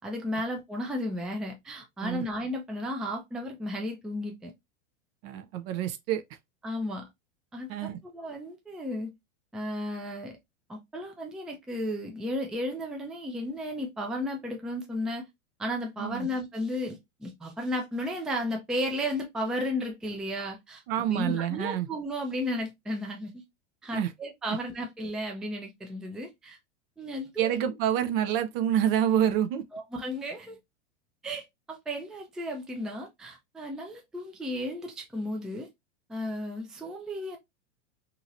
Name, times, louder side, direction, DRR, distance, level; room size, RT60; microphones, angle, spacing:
voice 1, 0.0-4.5 6.6-7.1 7.5-9.1 9.5-10.3 10.7-15.2 15.6-20.8 21.1-23.4 23.8-26.6 27.0-27.6 29.7-30.6 31.2-35.7 36.1-37.4, left 1 dB, ahead, 0.4 m, -34 dB
voice 2, 5.2-6.2 7.7-8.0 16.0-16.3 20.9-21.9 23.9-24.1 27.4-29.6, right 10 dB, 50° right, 0.6 m, -27 dB
2.9 x 2.8 x 2.4 m
hypercardioid pair, 110°, 37 cm